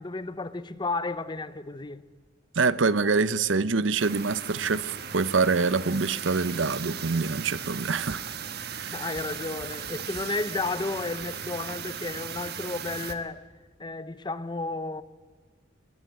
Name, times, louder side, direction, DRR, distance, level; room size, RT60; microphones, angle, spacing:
voice 1, 0.0-2.0 8.7-13.5 13.8-15.0, left 3 dB, 25° left, 0.7 m, -32 dB
voice 2, 2.5-8.2 8.6-8.9, right 4 dB, 75° right, 0.8 m, -25 dB
sound 1, 4.0-13.1, right 7 dB, 55° right, 1.4 m, -37 dB
21.0 x 17.0 x 8.5 m
head